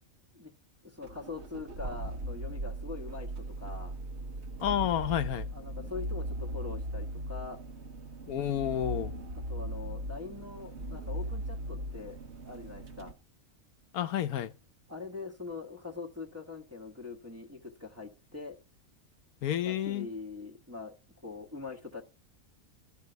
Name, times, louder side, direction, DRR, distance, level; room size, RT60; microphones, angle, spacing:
voice 1, 0.8-4.0 5.5-7.6 9.3-12.2 12.4-13.1 14.9-18.6 19.6-20.9 21.2-22.0, left 4 dB, 10° right, 1.3 m, -43 dB
sound 1, 1.0-13.1, right 1 dB, 55° right, 1.3 m, -38 dB
voice 2, 4.6-5.5 8.3-9.1 13.9-14.5 19.4-20.1, left 11 dB, 90° left, 1.2 m, -30 dB
13.0 x 4.7 x 7.9 m
omnidirectional pair, 1.5 m